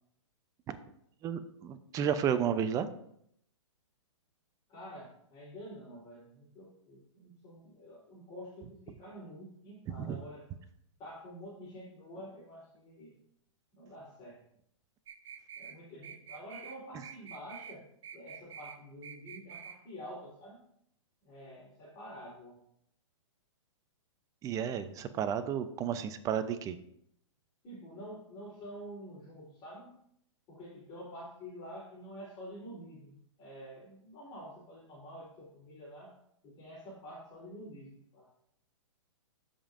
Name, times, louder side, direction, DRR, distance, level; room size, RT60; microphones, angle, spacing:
voice 1, 1.2-2.9 9.9-10.2 24.4-26.8, right 8 dB, 20° right, 10 dB, 0.6 m, -32 dB
voice 2, 4.7-10.5 11.0-13.2 13.7-14.4 15.6-17.9 18.1-20.6 21.2-22.6 27.6-30.0 30.5-36.1 36.4-38.3, equal, 30° left, -7 dB, 3.6 m, -48 dB
sound 1, 15.1-15.8 16.0-16.8 17.0-17.8 18.0-18.8 19.0-19.8, right 8 dB, 65° right, 0.9 m, -47 dB
13.5 x 5.3 x 2.6 m, 0.70 s
hypercardioid pair, 130°, 16 cm